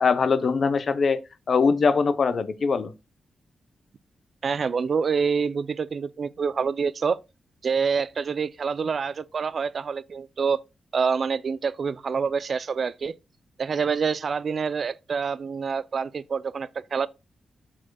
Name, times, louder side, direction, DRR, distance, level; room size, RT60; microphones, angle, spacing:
voice 1, 0.0-1.2 1.5-2.9, left 5 dB, 60° left, 0.7 m, -22 dB
voice 2, 4.4-7.2 7.6-10.6 10.9-13.1 13.6-17.1, right 5 dB, 60° right, 0.4 m, -26 dB
12.5 x 4.3 x 2.3 m
cardioid pair, 65°, 0 cm